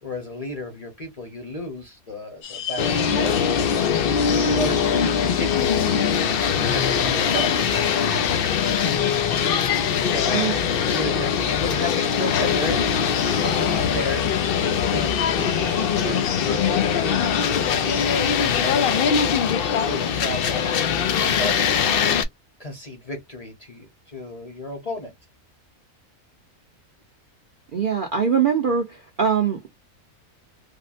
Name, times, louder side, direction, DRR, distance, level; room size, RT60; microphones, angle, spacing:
voice 1, 0.0-4.1 4.4-5.9 6.5-7.7 10.0-14.3 14.9-18.0 18.6-19.5 19.8-20.7 21.2-21.9 22.6-25.1, left 1 dB, 30° left, 0.8 m, -33 dB
sound 1, 2.4-19.1, left 7 dB, 60° left, 1.1 m, -36 dB
sound 2, 2.8-22.2, left 7 dB, 90° left, 0.5 m, -22 dB
voice 2, 27.7-29.7, right 7 dB, 50° right, 0.6 m, -22 dB
3.5 x 2.1 x 2.5 m
omnidirectional pair, 1.5 m